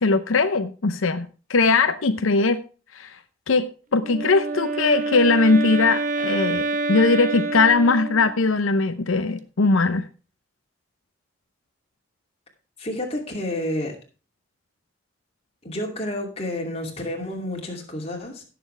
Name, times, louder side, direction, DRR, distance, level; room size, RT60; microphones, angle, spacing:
voice 1, 0.0-2.6 2.9-3.2 3.5-10.1, left 3 dB, 85° left, 10 dB, 0.7 m, -20 dB
Wind instrument woodwind instrument, 4.0-8.5, right 3 dB, 40° right, 0.8 m, -27 dB
voice 2, 12.8-14.0 15.6-18.4, left 1 dB, 30° left, 1 dB, 2.6 m, -30 dB
17.0 x 6.9 x 3.3 m, 0.35 s
head